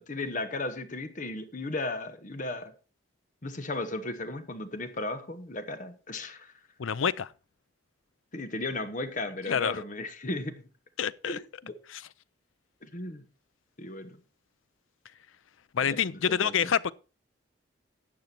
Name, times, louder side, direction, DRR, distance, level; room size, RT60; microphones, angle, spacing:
voice 1, 0.0-2.7 3.4-6.5 8.3-10.6 11.3-11.8 12.8-13.2 13.8-14.2 15.8-16.7, left 2 dB, 40° left, 1.1 m, -35 dB
voice 2, 6.8-7.3 9.5-9.8 11.0-11.4 11.9-12.0 15.7-16.9, left 7 dB, 90° left, 0.5 m, -27 dB
12.0 x 7.9 x 4.4 m
head